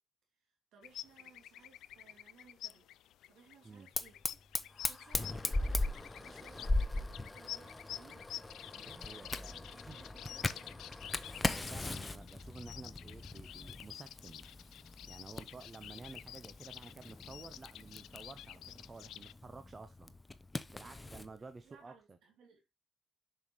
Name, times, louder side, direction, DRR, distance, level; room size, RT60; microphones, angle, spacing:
voice 1, 0.7-2.9 3.3-4.2 4.6-8.3 8.8-9.3 9.7-10.9 20.7-22.7, right 6 dB, 75° right, 2.8 m, -62 dB
sound 1, 0.8-19.3, left 12 dB, 80° left, 0.3 m, -50 dB
Fire, 4.0-21.3, left 2 dB, 20° left, 0.7 m, -39 dB
voice 2, 8.7-10.0 11.5-14.5 15.0-20.1 20.7-22.2, right 4 dB, 30° right, 0.8 m, -52 dB
7.1 x 5.7 x 3.0 m
cardioid pair, 90°, 0 cm